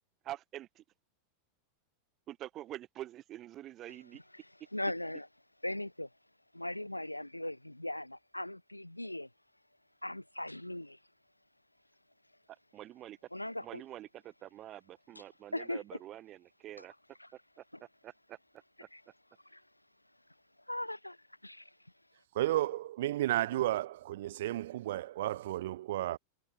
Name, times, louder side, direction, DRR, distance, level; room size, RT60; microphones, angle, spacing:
voice 1, 0.2-0.8 2.3-4.2 12.7-13.2 13.6-16.9 18.0-18.4, right 13 dB, 35° right, 1.0 m, -46 dB
voice 2, 4.7-5.3 5.6-6.1 6.5-9.3 10.0-11.0 13.3-13.8 15.5-15.8 16.8-16.9 17.2-17.3 17.7-17.8 18.9-19.0 19.5-19.6 20.7-21.2 21.4-21.7, left 1 dB, 85° left, 0.7 m, -39 dB
voice 3, 22.3-26.2, right 14 dB, 55° right, 0.5 m, -32 dB
figure-of-eight pair, 90°, 0 cm